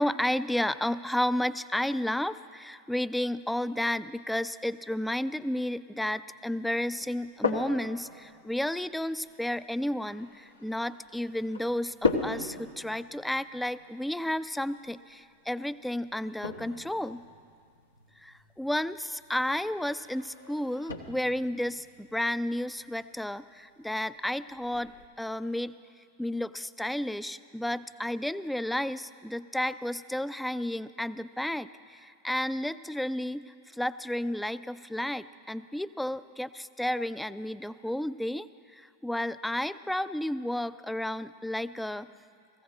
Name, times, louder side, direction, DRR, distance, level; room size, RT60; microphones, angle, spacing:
voice 1, 0.0-17.2 18.2-25.7 26.2-42.1, left 1 dB, 5° left, 15 dB, 0.4 m, -32 dB
sound 1, 7.0-25.1, left 4 dB, 85° left, 1.2 m, -39 dB
17.5 x 15.0 x 4.1 m, 2.2 s
figure-of-eight pair, 90°, 0 cm